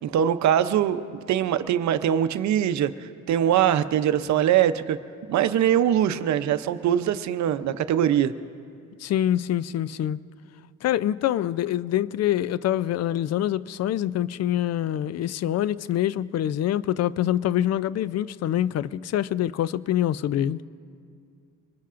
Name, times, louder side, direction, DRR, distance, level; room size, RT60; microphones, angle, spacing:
voice 1, 0.0-5.0 5.3-8.3, right 10 dB, 65° right, 0.7 m, -22 dB
voice 2, 9.0-10.2 10.8-20.6, left 12 dB, 60° left, 0.4 m, -25 dB
25.0 x 21.0 x 2.5 m
cardioid pair, 90°, 30 cm